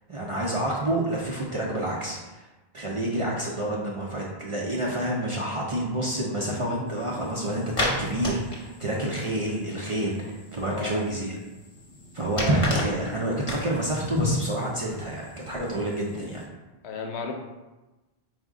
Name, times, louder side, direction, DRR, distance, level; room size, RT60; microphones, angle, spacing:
voice 1, 0.1-2.4 2.7-11.3 12.1-16.4, right 1 dB, 45° right, -3 dB, 0.4 m, -28 dB
sound 1, 6.9-16.4, left 1 dB, 40° left, 0.8 m, -34 dB
voice 2, 10.7-11.1 12.4-13.1 16.8-17.3, left 5 dB, 85° left, 3 dB, 0.9 m, -34 dB
4.7 x 2.1 x 3.5 m, 1.1 s
omnidirectional pair, 1.1 m